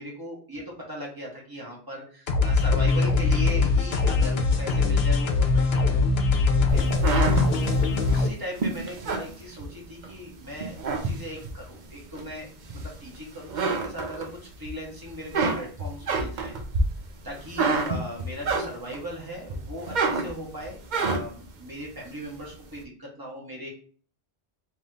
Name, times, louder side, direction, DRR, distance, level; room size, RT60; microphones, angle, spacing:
voice 1, 0.0-5.8 6.3-6.8 7.5-16.5 17.2-23.7, equal, 20° right, -3 dB, 1.5 m, -38 dB
sound 1, 2.3-8.3, left 3 dB, 80° left, 0.9 m, -22 dB
sound 2, 6.7-10.1 10.5-11.6 12.1-13.1 13.4-14.7 15.0-19.1 19.5-21.5, right 3 dB, 55° right, 0.8 m, -28 dB
3.3 x 2.9 x 3.8 m, 0.43 s
omnidirectional pair, 1.0 m